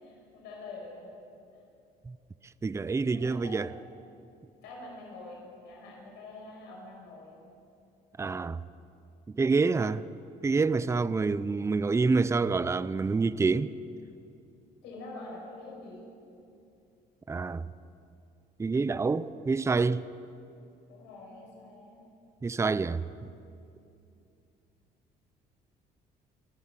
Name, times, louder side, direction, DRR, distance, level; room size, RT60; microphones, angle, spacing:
voice 1, 0.0-1.1 1.5-1.6 3.1-3.7 4.6-7.4 14.8-16.1 20.9-22.0 24.1-24.2, left 2 dB, 90° left, 6.3 m, -46 dB
voice 2, 2.6-3.7 8.2-8.6 9.3-10.1 10.4-13.7 17.3-17.7 18.6-20.1 22.4-23.3, right 4 dB, 15° right, 0.6 m, -27 dB
30.0 x 13.5 x 7.4 m
cardioid pair, 110°, 17 cm